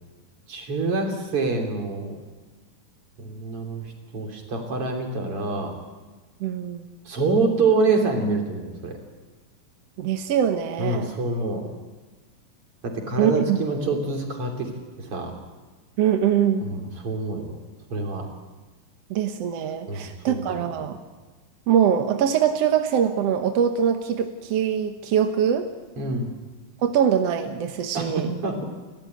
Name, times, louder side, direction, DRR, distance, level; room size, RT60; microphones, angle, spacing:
voice 1, 0.5-2.2 3.2-3.8 4.1-5.7 7.1-9.0 10.8-11.7 12.8-14.7 15.0-15.3 16.6-17.5 17.9-18.3 19.9-20.7 26.0-26.3 27.9-28.6, right 3 dB, 40° right, 2 dB, 3.9 m, -26 dB
voice 2, 6.4-6.9 10.0-11.1 13.2-13.6 16.0-16.6 19.1-21.0 21.7-25.7 26.8-28.3, right 8 dB, 70° right, 6 dB, 1.5 m, -23 dB
29.5 x 13.5 x 9.1 m, 1.3 s
omnidirectional pair, 4.3 m